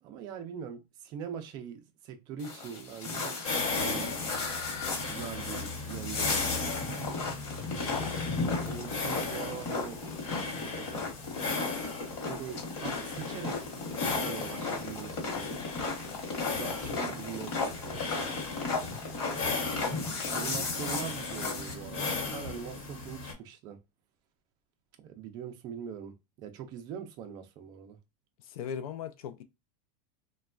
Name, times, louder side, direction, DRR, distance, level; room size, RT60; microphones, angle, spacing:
voice 1, 0.0-4.2 5.0-6.7 7.7-8.1 8.7-10.0 10.6-11.1 12.2-15.6 16.4-18.4 19.3-19.7 20.3-23.8 25.0-28.0, right 8 dB, 25° right, 0.3 m, -42 dB
sound 1, 2.4-21.7, left 4 dB, 50° left, 1.1 m, -35 dB
sound 2, 3.4-23.3, left 4 dB, 70° left, 1.1 m, -37 dB
voice 2, 28.4-29.4, left 8 dB, 85° left, 0.4 m, -38 dB
3.1 x 2.2 x 2.3 m
supercardioid pair, 180°, 18 cm